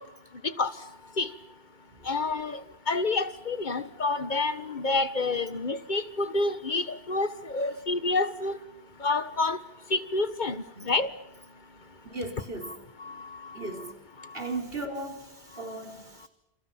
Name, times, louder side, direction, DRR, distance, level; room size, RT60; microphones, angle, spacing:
voice 1, 2.1-2.6 2.9-8.6 9.0-9.6 9.9-11.1 12.6-12.7 13.0-13.3, left 3 dB, 45° left, 13 dB, 1.4 m, -28 dB
voice 2, 12.0-12.8 13.5-13.9 14.3-16.3, right 2 dB, 60° right, 3 dB, 4.7 m, -37 dB
28.5 x 28.5 x 5.8 m, 0.90 s
omnidirectional pair, 1.1 m